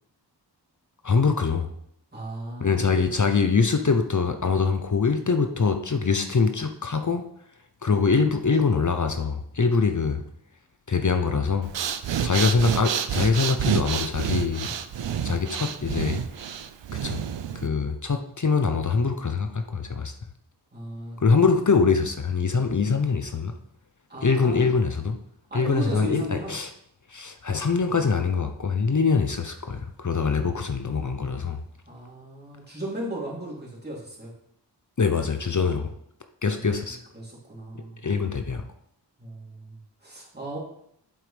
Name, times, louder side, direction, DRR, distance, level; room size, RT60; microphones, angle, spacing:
voice 1, 1.0-1.7 2.6-7.2 7.8-10.2 10.9-11.7 12.2-14.7 15.2-16.2 17.0-17.2 17.5-20.1 21.2-23.5 24.2-25.2 25.5-26.7 27.1-31.6 35.0-35.9 36.4-37.0 38.0-38.6, left 5 dB, 45° left, 7 dB, 0.7 m, -23 dB
voice 2, 2.1-3.1 20.7-21.6 24.1-24.7 25.5-26.5 31.9-34.3 36.4-38.0 39.2-40.6, right 1 dB, 25° right, -5 dB, 3.1 m, -36 dB
Breathing, 11.6-17.7, right 8 dB, 85° right, 0.5 m, -29 dB
8.4 x 7.4 x 3.4 m, 0.72 s
wide cardioid pair, 60°, 42 cm